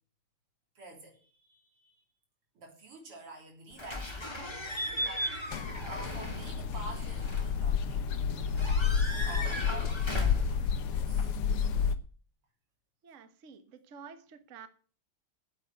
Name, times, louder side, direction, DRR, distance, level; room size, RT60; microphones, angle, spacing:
voice 1, 0.8-2.0 2.5-8.0 9.3-11.3 11.8-11.9, right 2 dB, 85° right, 1 dB, 4.4 m, -48 dB
Slam / Squeak / Alarm, 3.8-11.7, left 1 dB, 10° left, 2.1 m, -37 dB
sound 1, 5.5-11.9, left 6 dB, 90° left, 1.9 m, -30 dB
voice 2, 13.0-14.7, right 6 dB, 40° right, 9 dB, 1.4 m, -50 dB
9.9 x 8.4 x 9.1 m, 0.41 s
omnidirectional pair, 2.4 m